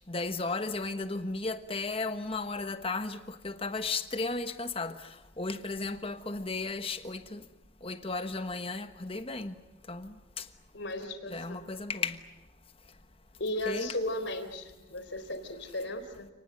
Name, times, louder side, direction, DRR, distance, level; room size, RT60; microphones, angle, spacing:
voice 1, 0.1-7.5 7.8-9.6 9.9-10.5 11.3-12.2 13.7-13.9, left 3 dB, 30° left, 1.3 m, -35 dB
voice 2, 10.7-11.7 13.4-16.3, left 1 dB, 65° left, 4.0 m, -36 dB
30.0 x 19.5 x 9.5 m
head